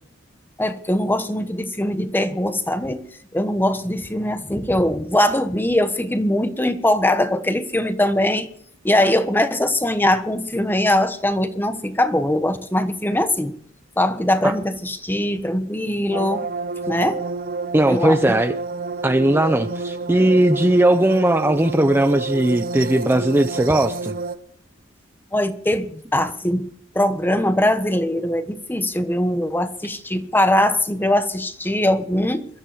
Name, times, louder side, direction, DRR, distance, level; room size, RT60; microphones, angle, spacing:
voice 1, 0.6-3.0 3.3-8.5 8.8-13.5 14.0-16.5 16.9-17.2 17.9-18.4 25.3-26.7 26.9-32.5, left 1 dB, 10° left, 10 dB, 1.1 m, -21 dB
sound 1, 16.1-24.4, right 3 dB, 45° right, 0.9 m, -29 dB
voice 2, 17.7-18.5 19.0-24.1, right 1 dB, 10° right, 8 dB, 0.6 m, -18 dB
21.5 x 13.0 x 5.0 m, 0.64 s
head